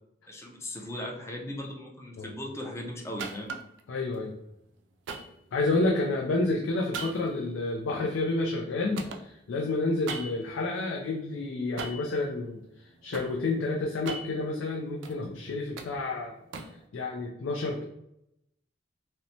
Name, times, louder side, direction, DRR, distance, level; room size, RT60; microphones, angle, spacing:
voice 1, 0.3-3.5, left 1 dB, 15° left, 1 dB, 0.4 m, -38 dB
sound 1, 3.2-3.8 5.1-6.0 6.9-8.7 9.0-10.6 11.8-12.2 12.7-13.3 13.9-15.2 15.5-16.8, right 4 dB, 70° right, 0.3 m, -40 dB
voice 2, 3.9-4.3 5.5-12.6 13.0-16.4 16.9-17.8, left 2 dB, 85° left, 0 dB, 0.4 m, -29 dB
2.9 x 2.0 x 2.6 m, 0.81 s
head